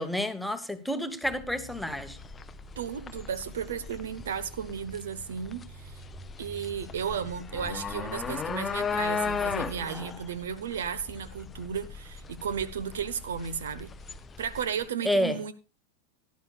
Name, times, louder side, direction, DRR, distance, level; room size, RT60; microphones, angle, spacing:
voice 1, 0.0-2.2 15.0-15.4, equal, ahead, 1.2 m, -29 dB
sound 1, 1.2-14.5, right 2 dB, 25° right, 6.5 m, -48 dB
sound 2, 1.7-14.9, left 6 dB, 20° left, 0.6 m, -36 dB
voice 2, 2.8-6.0 6.4-13.9 14.4-15.5, right 7 dB, 60° right, 0.9 m, -34 dB
17.0 x 11.5 x 2.4 m
figure-of-eight pair, 90°, 0 cm